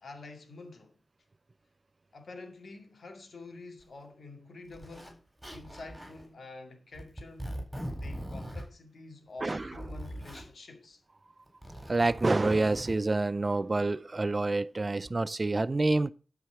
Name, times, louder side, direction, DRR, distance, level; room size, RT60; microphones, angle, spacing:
voice 1, 0.0-1.0 2.1-7.6 8.0-11.0, left 3 dB, 75° left, 2.3 m, -48 dB
Zipper (clothing), 3.8-3.9 4.7-5.1 5.4-6.2 6.9-8.7 9.4-10.5 11.5-13.0, equal, 5° right, 4.2 m, -41 dB
voice 2, 9.4-9.8 11.9-16.1, right 2 dB, 40° right, 0.4 m, -27 dB
12.5 x 4.8 x 5.8 m
cardioid pair, 65°, 0 cm